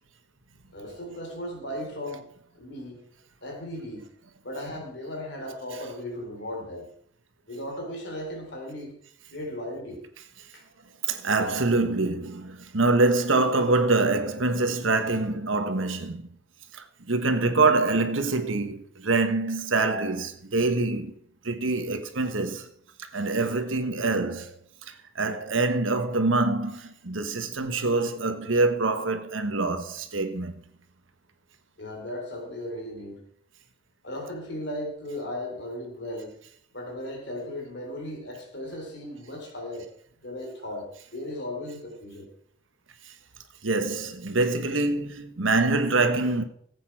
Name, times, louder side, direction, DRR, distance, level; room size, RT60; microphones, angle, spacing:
voice 1, 0.7-3.1 3.4-4.1 4.4-6.9 7.5-8.9 9.3-10.0 10.5-10.6 31.8-33.2 34.0-36.4 36.7-39.9 40.2-42.3, left 1 dB, 60° left, 3.8 m, -36 dB
voice 2, 11.0-16.2 16.7-21.1 21.4-22.7 23.0-24.6 25.1-30.6 43.6-46.4, right 3 dB, 90° right, 1.3 m, -25 dB
15.5 x 8.5 x 4.7 m
head